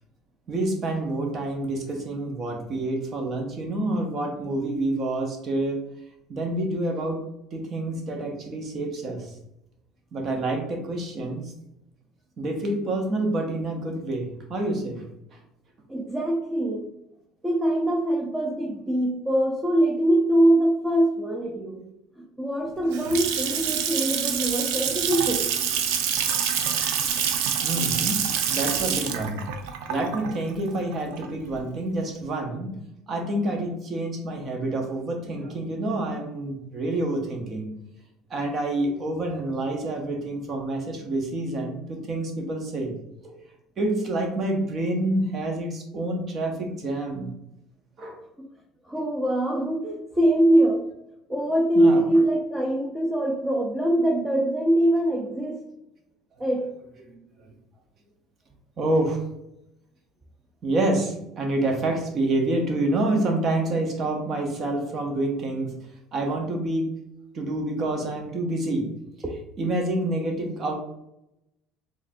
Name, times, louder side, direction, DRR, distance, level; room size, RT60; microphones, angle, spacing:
voice 1, 0.5-5.8 6.3-7.2 7.5-9.3 10.1-11.5 12.4-15.1 27.1-27.2 27.6-28.2 28.5-29.5 29.9-32.7 33.1-37.7 38.3-42.9 43.2-43.4 43.8-47.3 48.0-48.2 51.7-52.1 57.0-57.2 58.8-59.2 60.6-65.7 66.1-66.9 67.3-68.9 69.6-70.7, right 2 dB, 45° right, 3 dB, 1.0 m, -27 dB
voice 2, 15.9-16.9 17.4-21.8 22.2-25.4 48.4-48.5 48.9-50.8 51.3-55.6 56.4-56.7 69.2-69.3, right 1 dB, 15° right, -1 dB, 0.7 m, -23 dB
Water tap faucet / Sink (filling or washing) / Splash splatter, 22.7-31.6, right 8 dB, 80° right, 0.5 m, -26 dB
3.8 x 3.4 x 2.7 m, 0.84 s
supercardioid pair, 95°, 0 cm